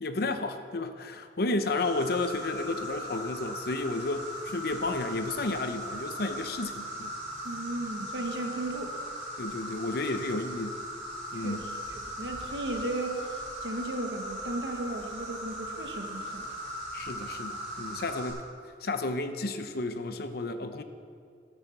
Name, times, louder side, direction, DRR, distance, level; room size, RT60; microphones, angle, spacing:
voice 1, 0.0-7.2 9.4-10.8 11.3-11.7 16.9-18.4 18.8-20.8, left 2 dB, 60° left, 9 dB, 0.7 m, -32 dB
Insect, 1.8-18.3, equal, 45° right, 3.2 m, -39 dB
voice 2, 7.4-8.9 11.4-11.6 12.0-13.3 13.6-16.5, right 2 dB, 85° right, 4 dB, 1.2 m, -35 dB
12.0 x 6.8 x 7.0 m, 2.3 s
head